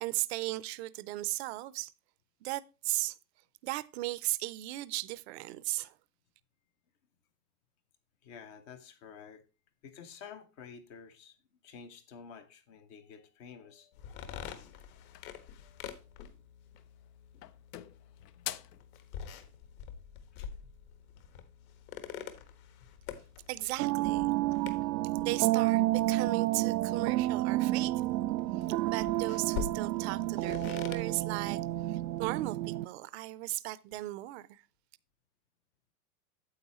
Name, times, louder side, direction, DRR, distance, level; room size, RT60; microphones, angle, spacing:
voice 1, 0.0-1.9 2.4-3.2 3.6-5.9 23.5-24.2 25.2-28.0 28.8-31.6 31.9-34.6, right 19 dB, 45° right, 0.5 m, -36 dB
voice 2, 8.2-9.4 9.8-11.4 11.6-14.1 15.1-15.2 15.6-16.2 19.2-19.4 20.3-20.5 24.3-24.4, left 6 dB, 20° left, 0.3 m, -51 dB
sound 1, 13.9-32.5, left 8 dB, 60° left, 1.5 m, -47 dB
sound 2, 14.2-15.4 16.7-17.1 17.4-18.9, left 13 dB, 85° left, 0.8 m, -45 dB
sound 3, 23.8-32.9, right 17 dB, 90° right, 0.6 m, -30 dB
9.5 x 7.7 x 2.9 m
supercardioid pair, 140°, 47 cm